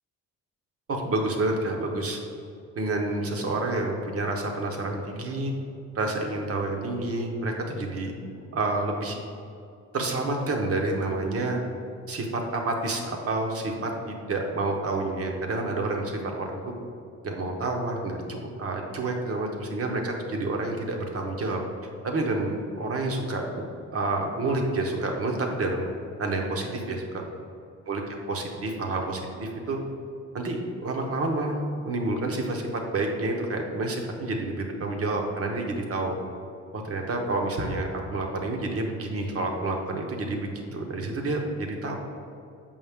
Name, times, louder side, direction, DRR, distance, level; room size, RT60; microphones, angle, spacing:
voice 1, 0.9-2.2 2.7-5.5 5.9-8.1 8.5-9.2 9.9-11.6 12.1-16.6 17.2-21.6 22.0-23.7 23.9-25.9 26.2-27.2 27.9-28.0 28.3-29.8 30.3-36.2 36.7-42.0, right 2 dB, 50° right, 2 dB, 1.2 m, -29 dB
7.2 x 5.4 x 3.6 m, 2.6 s
cardioid pair, 90°, 30 cm